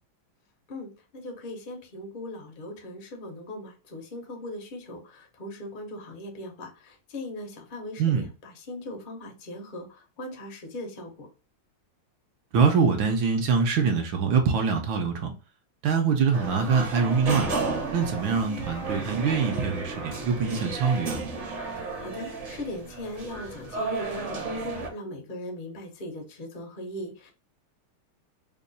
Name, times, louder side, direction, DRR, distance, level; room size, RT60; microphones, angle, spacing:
voice 1, 0.7-11.3 21.8-27.3, left 1 dB, 70° left, 0.4 m, -39 dB
voice 2, 12.5-15.3 15.8-17.5 17.9-21.2, right 5 dB, 75° right, 1.3 m, -24 dB
sound 1, 16.3-24.9, right 3 dB, 50° right, 0.9 m, -33 dB
3.5 x 2.3 x 3.9 m
omnidirectional pair, 2.3 m